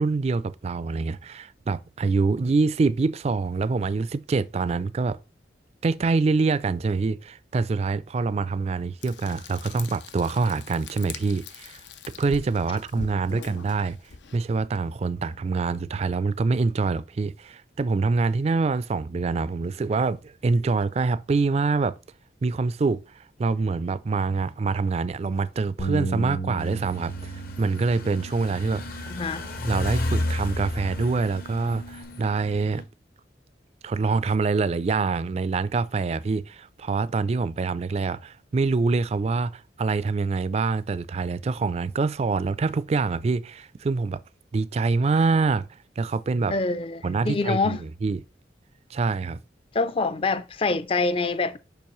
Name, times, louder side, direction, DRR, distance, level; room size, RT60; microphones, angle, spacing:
voice 1, 0.0-5.2 5.8-11.8 12.2-14.0 14.3-22.0 22.4-29.1 29.7-32.8 33.8-44.2 44.5-45.7 46.0-46.5 47.0-48.2 48.9-49.4, right 4 dB, 35° right, 0.3 m, -25 dB
Frying (food), 9.0-14.4, left 5 dB, 90° left, 0.6 m, -42 dB
Bass guitar, 25.8-32.0, right 4 dB, 75° left, 1.2 m, -36 dB
sound 1, 26.6-32.8, left 1 dB, 55° left, 0.9 m, -32 dB
voice 2, 29.1-29.5 46.5-47.8 49.7-51.6, left 3 dB, 30° left, 0.4 m, -26 dB
7.0 x 5.2 x 3.0 m
head